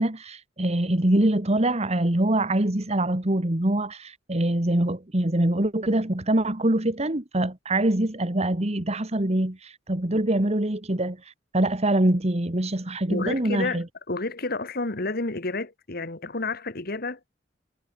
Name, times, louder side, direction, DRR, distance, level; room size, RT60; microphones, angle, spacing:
voice 1, 0.0-11.2 11.5-13.8, right 1 dB, 35° right, 1.8 m, -24 dB
voice 2, 13.1-17.2, left 3 dB, 55° left, 2.1 m, -30 dB
head